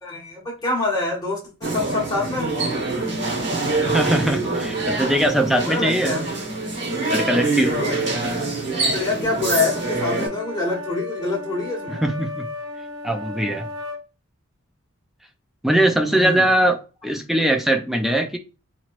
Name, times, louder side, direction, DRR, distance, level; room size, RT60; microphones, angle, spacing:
voice 1, 0.0-2.5 5.6-6.2 7.6-8.0 8.9-12.0 16.0-16.4, left 3 dB, 20° left, 1.3 m, -26 dB
sound 1, 1.6-10.3, right 3 dB, 55° right, 1.2 m, -25 dB
voice 2, 3.8-6.2 7.1-7.7 11.9-12.5 13.0-13.7 15.6-18.4, right 1 dB, ahead, 0.3 m, -21 dB
sound 2, 9.5-14.0, left 2 dB, 90° right, 0.8 m, -34 dB
4.1 x 3.0 x 2.5 m
head